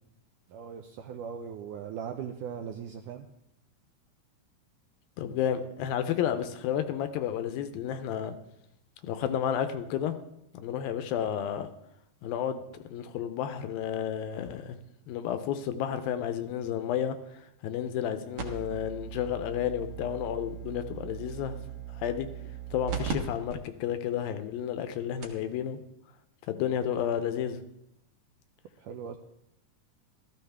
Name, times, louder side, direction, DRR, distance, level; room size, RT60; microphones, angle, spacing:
voice 1, 0.5-3.3 28.8-29.2, right 7 dB, 85° right, 4 dB, 1.8 m, -39 dB
voice 2, 5.2-8.4 9.0-10.2 10.5-11.7 12.2-12.6 12.9-14.8 15.1-17.2 17.6-21.6 22.0-22.3 22.7-25.8 26.5-27.6, left 9 dB, 80° left, 9 dB, 2.4 m, -31 dB
sound 1, 18.4-23.1 23.5-23.6 24.2-24.3 24.9-25.0 25.2-25.5 26.7-26.8, right 8 dB, 60° right, 2.5 m, -38 dB
15.0 x 13.5 x 3.5 m, 0.82 s
omnidirectional pair, 4.4 m